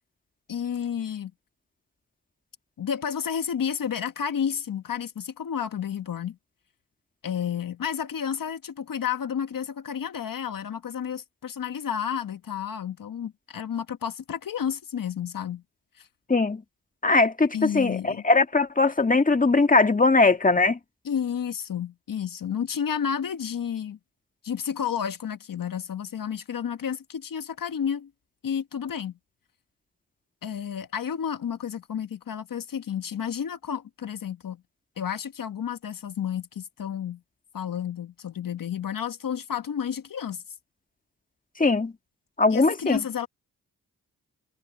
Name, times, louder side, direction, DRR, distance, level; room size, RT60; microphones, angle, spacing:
voice 1, 0.5-1.3 2.8-6.4 7.2-15.6 15.9-16.1 17.5-18.2 21.0-24.0 24.4-28.1 28.4-29.2 30.4-34.6 35.0-37.2 37.5-40.4 42.5-43.3, left 8 dB, 65° left, 1.4 m, -31 dB
voice 2, 16.3-16.6 17.0-20.8 41.6-41.9 42.4-43.0, left 3 dB, 20° left, 1.8 m, -20 dB
cardioid pair, 50°, 36 cm